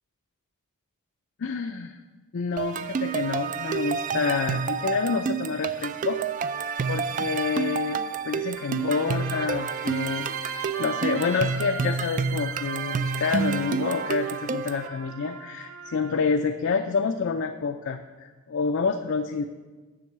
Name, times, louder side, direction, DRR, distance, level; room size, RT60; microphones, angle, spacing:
voice 1, 1.4-2.0 2.3-6.2 6.9-8.0 8.2-19.5, left 5 dB, 60° left, 5 dB, 0.5 m, -28 dB
sound 1, 2.6-14.9, right 6 dB, 35° right, 0.3 m, -29 dB
Trumpet, 8.6-16.2, right 5 dB, 90° right, 0.8 m, -39 dB
7.5 x 6.3 x 7.8 m, 1.3 s
head